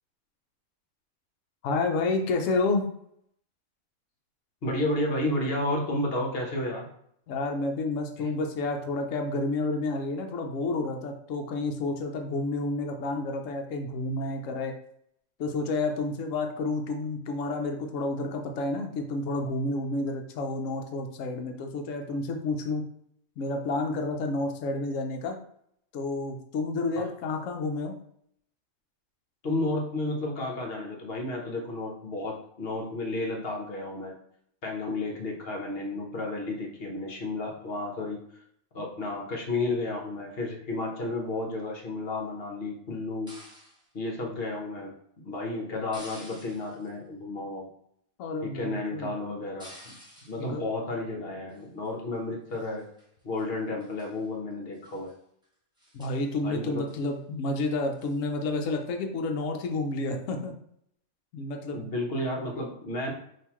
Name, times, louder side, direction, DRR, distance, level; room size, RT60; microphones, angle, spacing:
voice 1, 1.6-2.8 7.3-14.7 15.4-22.9 23.4-25.4 25.9-28.0 48.2-49.1 50.4-50.7 55.9-60.5 61.3-61.9, left 2 dB, 70° left, 3 dB, 1.0 m, -30 dB
voice 2, 4.6-6.9 8.2-8.3 27.0-27.1 29.4-34.2 34.6-38.2 38.7-43.3 43.9-44.9 45.2-47.7 48.4-50.0 50.3-52.8 53.2-55.1 56.4-56.8 61.7-63.1, left 2 dB, 45° left, 1 dB, 1.1 m, -32 dB
sound 1, 43.3-43.9 45.9-46.9 49.6-50.5 51.5-51.9 52.5-53.1 53.4-53.5 53.8-54.2 54.7-55.1 55.4-55.5 55.8-56.3 56.9-57.1 58.0-58.2, equal, 5° right, 1.0 m, -50 dB
5.5 x 2.9 x 3.0 m, 0.69 s
omnidirectional pair, 1.5 m